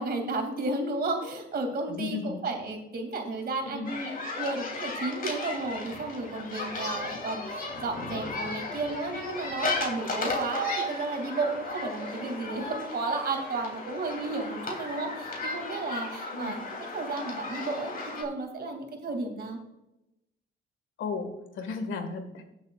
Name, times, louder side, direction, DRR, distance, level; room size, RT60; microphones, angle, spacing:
voice 1, 0.0-4.1 4.4-16.5 16.9-19.6, right 3 dB, 55° right, 4 dB, 2.6 m, -33 dB
voice 2, 1.9-2.4 3.7-3.9 16.3-16.6 21.0-22.4, left 4 dB, 80° left, 6 dB, 1.8 m, -34 dB
sound 1, 3.8-18.2, left 2 dB, 45° left, 3.2 m, -35 dB
17.5 x 7.6 x 2.5 m, 0.91 s
cardioid pair, 90°, 20 cm